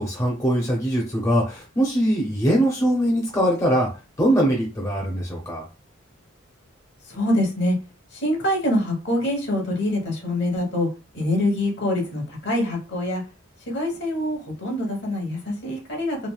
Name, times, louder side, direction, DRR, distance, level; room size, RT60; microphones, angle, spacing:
voice 1, 0.0-3.9 4.2-5.6, equal, 15° left, -2 dB, 0.6 m, -22 dB
voice 2, 7.1-7.7 8.1-10.9 11.1-13.2 13.7-16.2, left 1 dB, 60° left, 1 dB, 1.0 m, -25 dB
3.1 x 2.5 x 2.3 m, 0.31 s
head